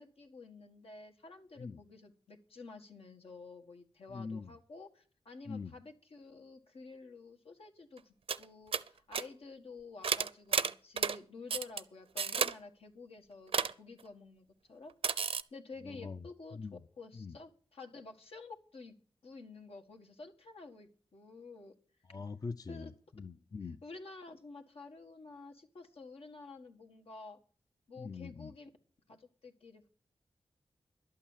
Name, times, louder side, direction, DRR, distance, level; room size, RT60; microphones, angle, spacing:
voice 1, 0.0-16.6 17.0-19.0 19.2-21.7 22.7-22.9 23.8-27.4 27.9-28.7 29.1-29.9, left 3 dB, 80° left, 1.8 m, -51 dB
voice 2, 4.1-4.5 5.5-5.7 15.8-16.2 16.5-16.8 17.1-17.4 22.1-23.8 28.0-28.5, left 4 dB, 40° left, 0.5 m, -43 dB
sound 1, 8.0-8.1 8.3-8.4 8.7-8.9 9.1-9.2 10.0-11.2 11.5-11.8 12.2-12.5 13.5-13.7 15.0-15.4, right 6 dB, 75° right, 0.6 m, -31 dB
11.5 x 8.7 x 7.3 m
wide cardioid pair, 100°, 10 cm